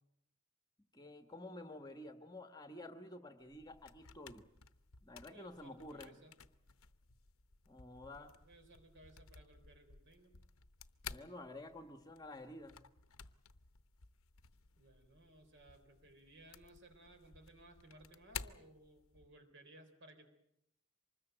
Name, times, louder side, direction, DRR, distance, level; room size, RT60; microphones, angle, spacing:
voice 1, 0.9-4.4 5.0-6.2 7.7-8.3 11.1-12.8, left 1 dB, 15° left, 7 dB, 1.3 m, -51 dB
sound 1, 3.4-19.4, left 7 dB, 65° left, 0.9 m, -55 dB
voice 2, 5.3-6.3 8.1-10.3 14.8-20.3, right 1 dB, 55° right, 7 dB, 3.9 m, -61 dB
25.0 x 20.5 x 7.9 m, 0.78 s
head